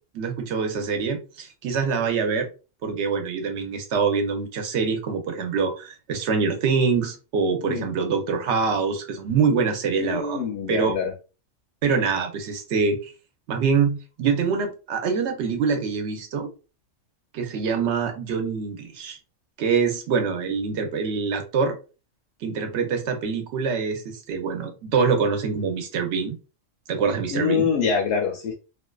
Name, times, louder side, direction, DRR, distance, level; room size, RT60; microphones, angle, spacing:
voice 1, 0.1-2.5 2.8-10.4 10.7-10.9 11.8-13.1 13.5-16.5 17.3-19.2 19.6-21.8 22.4-26.4 26.9-27.7, right 5 dB, 65° right, 0.8 m, -25 dB
voice 2, 10.0-11.1 27.3-28.5, left 6 dB, 65° left, 0.8 m, -25 dB
2.5 x 2.3 x 2.2 m
omnidirectional pair, 1.3 m